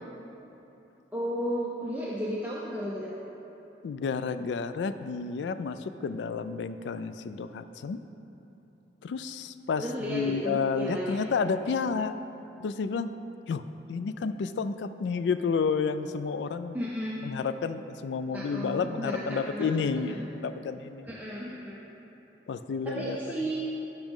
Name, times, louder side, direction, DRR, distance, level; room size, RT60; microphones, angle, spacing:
voice 1, 1.1-3.2 9.8-11.2 16.7-17.1 18.3-19.8 20.2-20.3 21.0-21.8 22.9-23.6, equal, 10° right, -6 dB, 0.6 m, -33 dB
voice 2, 3.8-8.0 9.0-12.2 12.6-13.1 13.5-13.6 13.9-16.8 17.2-21.1 22.5-23.2, left 5 dB, 80° left, 12 dB, 0.3 m, -30 dB
10.5 x 6.0 x 3.7 m, 3.0 s
head